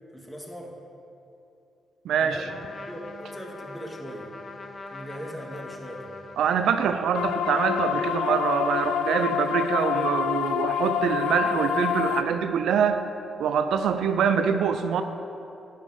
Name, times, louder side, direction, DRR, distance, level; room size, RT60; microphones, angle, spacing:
voice 1, 0.1-0.8 2.2-2.6 2.8-4.3 4.9-6.1 7.2-7.3, equal, 10° left, -1 dB, 2.4 m, -39 dB
voice 2, 2.1-2.4 6.4-13.0 13.4-15.0, right 7 dB, 70° right, 8 dB, 0.4 m, -24 dB
Trumpet, 2.5-7.0, left 3 dB, 45° left, 0.9 m, -43 dB
sound 1, 7.1-12.2, left 9 dB, 80° left, 0.4 m, -27 dB
10.0 x 5.2 x 8.2 m, 2.9 s
hypercardioid pair, 40°, 0 cm